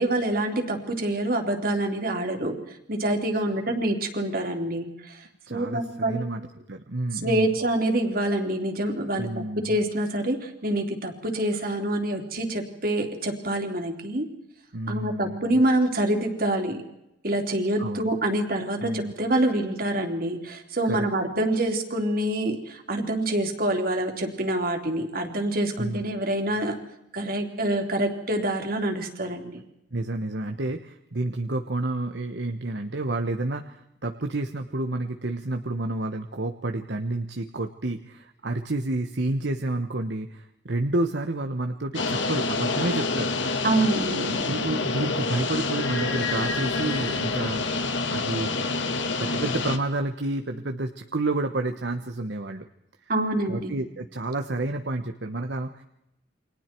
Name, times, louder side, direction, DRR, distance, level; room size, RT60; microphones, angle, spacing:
voice 1, 0.0-2.6 2.9-6.2 7.1-9.3 9.6-14.3 14.9-16.8 17.2-26.8 27.1-29.6 43.6-44.6 53.1-53.7, right 1 dB, 50° right, 3 dB, 3.5 m, -26 dB
voice 2, 5.5-6.4 6.7-7.5 9.2-9.7 14.7-15.5 17.8-18.1 18.8-19.1 20.9-21.0 25.8-26.0 29.9-43.3 44.5-48.7 49.2-52.7 53.0-53.1 53.5-55.8, right 2 dB, 65° right, 5 dB, 1.2 m, -30 dB
sound 1, 41.9-49.8, left 3 dB, 85° left, 2.3 m, -27 dB
29.5 x 24.5 x 4.6 m, 0.85 s
head